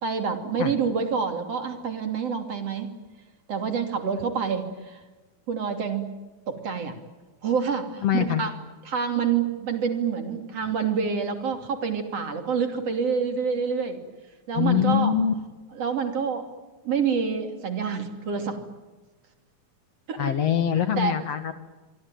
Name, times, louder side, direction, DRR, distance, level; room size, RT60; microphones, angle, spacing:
voice 1, 0.0-2.9 3.5-5.0 5.5-6.1 6.5-7.0 7.4-8.5 8.9-14.0 14.5-15.1 15.8-16.5 16.8-18.6 20.1-20.3 21.0-21.2, right 6 dB, 50° right, 6 dB, 3.7 m, -27 dB
voice 2, 8.0-8.4 14.5-15.3 20.2-21.5, left 9 dB, 55° left, 10 dB, 2.4 m, -23 dB
25.5 x 25.0 x 9.1 m, 1.2 s
omnidirectional pair, 3.6 m